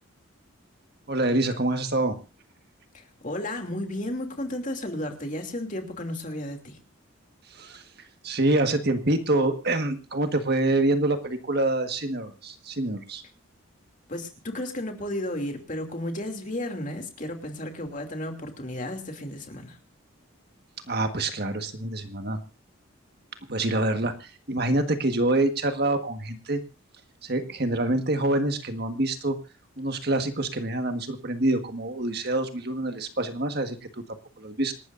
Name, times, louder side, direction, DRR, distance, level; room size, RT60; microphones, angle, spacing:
voice 1, 1.1-2.2 7.5-7.8 8.2-13.2 20.9-22.4 23.5-26.6 27.2-29.4 29.8-34.7, right 2 dB, 50° right, 6 dB, 1.6 m, -26 dB
voice 2, 2.9-6.8 14.1-19.8, left 1 dB, 40° left, 4 dB, 2.7 m, -33 dB
27.0 x 12.5 x 2.6 m, 0.31 s
head